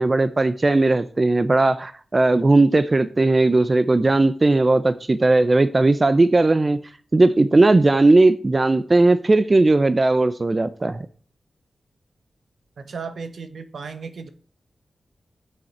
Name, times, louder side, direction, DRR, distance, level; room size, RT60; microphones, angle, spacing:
voice 1, 0.0-6.8 7.1-11.0, right 2 dB, 35° right, 0.7 m, -17 dB
voice 2, 12.8-14.3, right 5 dB, 75° right, 1.3 m, -35 dB
7.6 x 6.6 x 7.4 m
cardioid pair, 65°, 0 cm